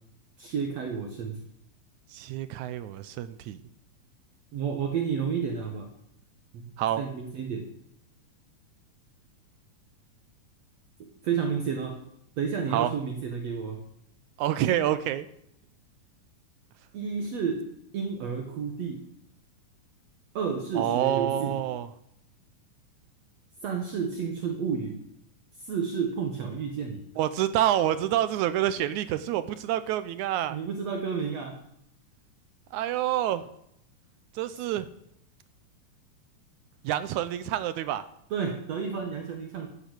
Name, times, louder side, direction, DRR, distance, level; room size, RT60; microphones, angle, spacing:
voice 1, 0.4-1.4 4.5-5.9 6.5-6.7 7.0-7.7 11.0-12.0 12.4-13.8 16.9-19.1 20.4-21.6 23.6-25.0 25.6-27.0 30.5-31.6 38.3-39.7, right 6 dB, 60° right, 3 dB, 2.3 m, -31 dB
voice 2, 2.1-3.6 6.8-7.0 12.7-12.9 14.4-15.3 20.8-21.9 27.2-30.6 32.7-33.4 34.4-34.9 36.8-38.0, right 12 dB, 75° right, 13 dB, 1.9 m, -27 dB
14.0 x 9.0 x 8.1 m, 0.74 s
omnidirectional pair, 3.7 m